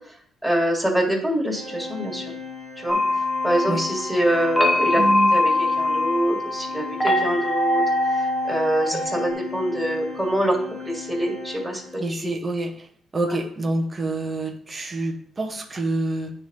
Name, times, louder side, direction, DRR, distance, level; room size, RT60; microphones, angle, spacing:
voice 1, 0.4-2.3 2.8-3.0 3.4-5.0 5.3-10.6 10.8-12.3, right 1 dB, 5° right, -1 dB, 2.0 m, -25 dB
Organ, 1.5-12.2, left 4 dB, 70° right, 1.6 m, -37 dB
sound 1, 2.9-9.3, left 1 dB, 15° left, 0.9 m, -23 dB
voice 2, 5.0-5.3 8.9-9.1 12.0-12.9 13.1-16.3, right 2 dB, 25° right, 1 dB, 1.0 m, -27 dB
9.8 x 3.3 x 4.1 m, 0.63 s
cardioid pair, 90°, 0 cm